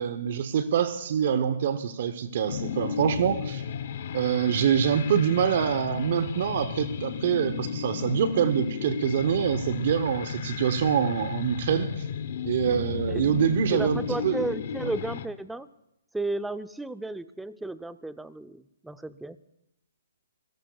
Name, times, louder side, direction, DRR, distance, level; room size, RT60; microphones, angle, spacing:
voice 1, 0.0-3.6 4.1-12.1 12.4-14.3, right 8 dB, 50° right, 10 dB, 0.9 m, -25 dB
sound 1, 2.5-15.3, left 7 dB, 55° left, 0.9 m, -34 dB
voice 2, 13.7-15.7 16.1-19.4, right 2 dB, 5° right, 12 dB, 0.5 m, -33 dB
27.5 x 17.0 x 2.4 m, 0.83 s
hypercardioid pair, 150°, 0 cm